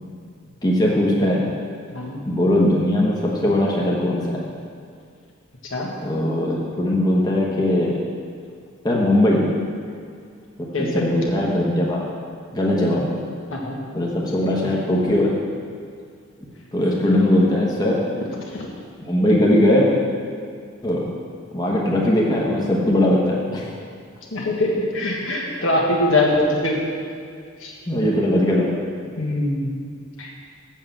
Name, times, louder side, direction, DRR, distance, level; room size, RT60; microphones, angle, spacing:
voice 1, 0.6-1.4 2.2-4.4 6.0-7.9 8.8-9.4 10.8-12.0 12.5-13.1 13.9-15.3 16.7-18.0 19.1-19.9 20.8-21.0 21.5-23.7 27.9-28.7, left 1 dB, 20° left, -4 dB, 1.1 m, -19 dB
voice 2, 24.3-24.7 24.9-26.8 27.6-27.7 29.2-29.7 30.2-30.3, left 1 dB, 75° left, -2 dB, 1.6 m, -22 dB
7.4 x 6.1 x 7.3 m, 2.2 s
head